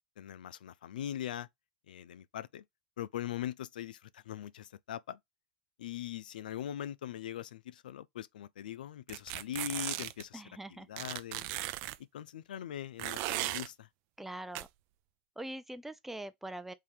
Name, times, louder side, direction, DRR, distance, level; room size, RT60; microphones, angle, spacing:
voice 1, 0.2-1.5 1.9-2.6 3.0-5.2 5.8-10.4 10.9-11.5 12.0-13.9, left 11 dB, 85° left, 0.4 m, -41 dB
sound 1, 9.1-10.2 11.0-12.0 13.0-13.7 14.6-14.7, right 16 dB, 55° right, 0.4 m, -36 dB
voice 2, 10.3-10.9 14.2-14.7 15.4-16.7, right 1 dB, 5° right, 0.6 m, -43 dB
3.7 x 2.7 x 4.7 m
hypercardioid pair, 110°, 5 cm